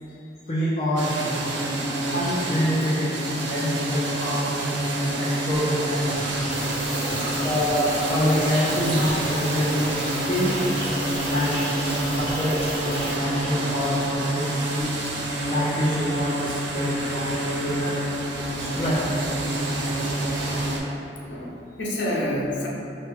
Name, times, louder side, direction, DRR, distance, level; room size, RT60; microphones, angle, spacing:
voice 1, 0.5-1.1 2.1-6.2 7.4-9.9 10.3-10.7 11.2-14.9 15.5-18.0 18.6-19.0, equal, 30° left, -9 dB, 0.5 m, -26 dB
sound 1, 1.0-20.8, right 1 dB, 75° right, 0.5 m, -27 dB
sound 2, 5.9-14.2, equal, 30° right, 1.0 m, -33 dB
sound 3, 6.5-13.2, equal, ahead, 0.9 m, -42 dB
voice 2, 7.1-7.4 8.8-9.0 12.0-12.3 14.5-14.7 16.9-17.1 18.6-18.8 21.3-22.7, left 1 dB, 80° left, -4 dB, 0.7 m, -31 dB
5.5 x 2.2 x 2.9 m, 2.9 s
head